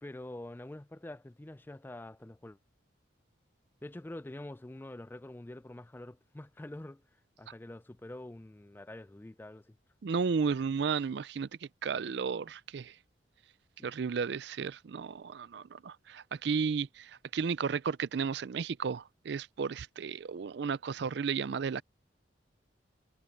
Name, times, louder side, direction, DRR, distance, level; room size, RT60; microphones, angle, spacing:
voice 1, 0.0-2.6 3.8-7.0 7.4-9.8 13.8-13.9, left 1 dB, 10° left, 0.3 m, -46 dB
voice 2, 10.0-12.9 13.8-21.8, right 5 dB, 60° right, 0.4 m, -33 dB
head